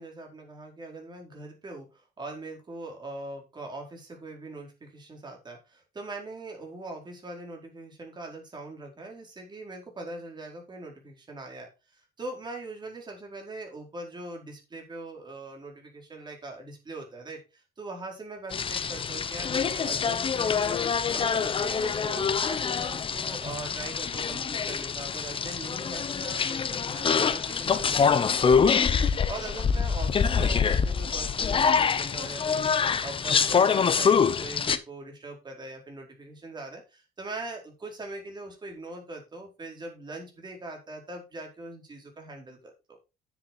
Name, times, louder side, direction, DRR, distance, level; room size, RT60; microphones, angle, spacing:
voice 1, 0.0-20.8 21.1-28.6 29.0-43.0, right 2 dB, 25° right, 1 dB, 4.5 m, -41 dB
sound 1, 18.5-34.8, left 6 dB, 30° left, 0.9 m, -25 dB
9.9 x 7.3 x 4.3 m, 0.28 s
cardioid pair, 110°, 17 cm